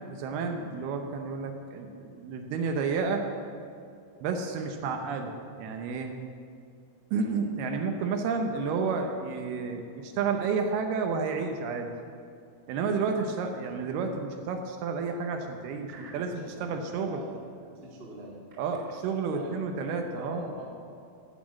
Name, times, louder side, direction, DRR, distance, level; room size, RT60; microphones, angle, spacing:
voice 1, 0.1-3.3 4.2-6.2 7.1-11.9 12.7-17.2 18.6-20.5, right 5 dB, 75° right, 4 dB, 2.6 m, -31 dB
voice 2, 15.7-18.4 19.3-19.5 20.1-20.6, right 2 dB, 35° right, -3 dB, 0.9 m, -44 dB
16.0 x 6.0 x 7.3 m, 2.4 s
omnidirectional pair, 4.9 m